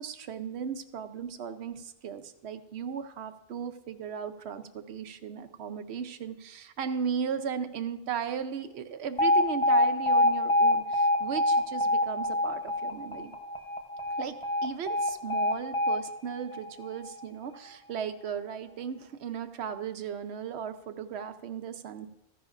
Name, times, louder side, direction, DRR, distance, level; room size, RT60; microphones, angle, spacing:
voice 1, 0.0-13.3 14.2-14.4 14.6-22.1, right 7 dB, 75° right, 11 dB, 0.9 m, -36 dB
Alarm, 9.2-17.2, left 1 dB, 30° left, 0.9 m, -26 dB
14.5 x 10.0 x 2.5 m, 0.90 s
omnidirectional pair, 1.1 m